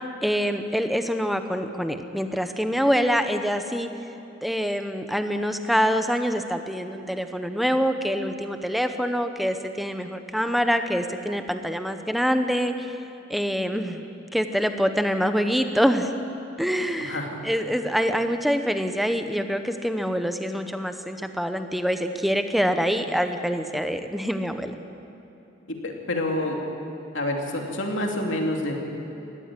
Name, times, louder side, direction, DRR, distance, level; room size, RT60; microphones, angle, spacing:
voice 1, 0.0-3.9 4.4-13.0 13.3-14.0 14.3-16.1 16.6-24.8, equal, ahead, 7 dB, 0.9 m, -25 dB
voice 2, 17.0-17.4 25.7-26.6 27.1-28.7, left 1 dB, 70° left, 1 dB, 2.7 m, -28 dB
18.0 x 14.5 x 9.8 m, 2.9 s
head